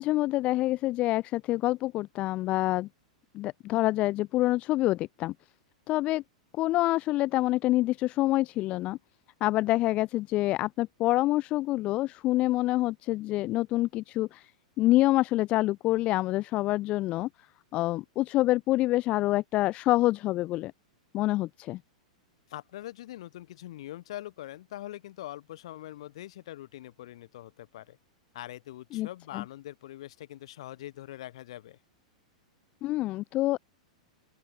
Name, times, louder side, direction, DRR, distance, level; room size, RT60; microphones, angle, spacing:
voice 1, 0.0-2.9 3.3-5.3 5.9-6.2 6.5-9.0 9.4-14.5 14.8-17.3 17.7-20.7 21.1-21.8 28.9-29.1 29.3-29.4 32.8-33.6, left 17 dB, 30° left, 0.5 m, -26 dB
voice 2, 22.5-28.0 28.3-31.8, left 14 dB, 55° left, 3.0 m, -43 dB
open air
figure-of-eight pair, 95°, 4 cm